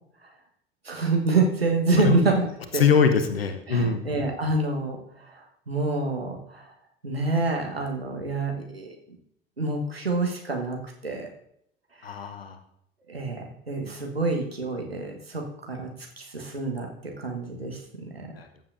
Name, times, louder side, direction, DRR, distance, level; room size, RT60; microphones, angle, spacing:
voice 1, 0.8-2.4 2.7-2.9 3.7-6.7 7.0-8.9 9.6-10.8 11.0-11.3 12.0-12.1 13.1-15.9 16.2-18.3, right 3 dB, 90° right, 1 dB, 1.3 m, -27 dB
voice 2, 2.7-4.0 12.0-12.6 18.3-18.5, left 6 dB, 80° left, 9 dB, 0.9 m, -23 dB
14.5 x 7.4 x 2.6 m, 0.73 s
figure-of-eight pair, 60°, 29 cm